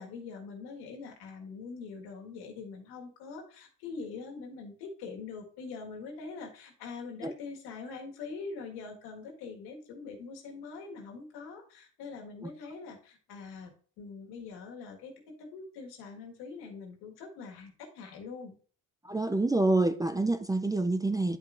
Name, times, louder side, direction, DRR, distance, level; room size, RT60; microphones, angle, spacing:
voice 1, 0.0-13.7 14.0-15.1 15.4-18.6, left 4 dB, 85° left, 1.8 m, -43 dB
voice 2, 19.0-21.4, right 2 dB, 10° right, 0.4 m, -27 dB
11.0 x 5.1 x 2.5 m
supercardioid pair, 90°, 37 cm